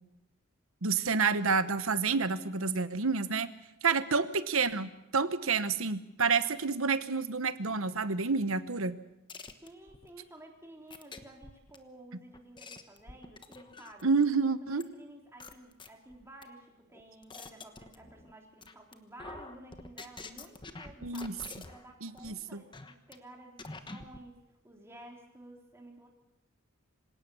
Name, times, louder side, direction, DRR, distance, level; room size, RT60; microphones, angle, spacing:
voice 1, 0.8-3.5 3.8-9.0 14.0-14.8 21.0-21.3 22.0-22.6, right 4 dB, 70° right, 13 dB, 1.1 m, -29 dB
sound 1, 9.3-10.1 10.9-11.8 12.3-14.1 14.8-14.9 15.4-16.4 16.9-18.3 18.6-18.9 19.2-21.9 22.2-22.3 22.7-23.2 23.6-24.2, left 3 dB, 20° left, 1.2 m, -46 dB
voice 2, 9.6-14.1 14.6-21.4 21.7-24.4 24.6-26.1, right 1 dB, 10° right, 0 dB, 3.6 m, -53 dB
26.0 x 17.5 x 7.1 m, 0.90 s
head